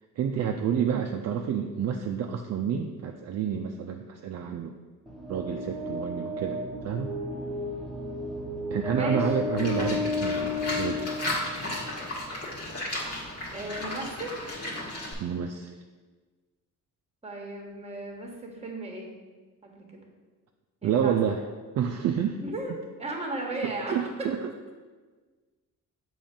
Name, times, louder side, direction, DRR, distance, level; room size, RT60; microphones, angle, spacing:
voice 1, 0.2-4.7 5.3-6.6 6.8-7.1 8.7-11.1 15.2-15.7 20.8-21.4 21.8-22.4 23.6-24.4, right 8 dB, 50° right, 3 dB, 0.4 m, -29 dB
sound 1, 5.1-12.0, left 2 dB, ahead, 1.2 m, -32 dB
voice 2, 8.9-9.4 13.5-14.4 17.2-19.1 19.6-20.0 20.8-21.3 22.4-24.0, right 2 dB, 20° right, 1 dB, 1.2 m, -36 dB
Livestock farm animals working animals, 9.6-15.1, left 1 dB, 45° left, 1.6 m, -34 dB
6.9 x 3.1 x 5.2 m, 1.4 s
cardioid pair, 125°, 33 cm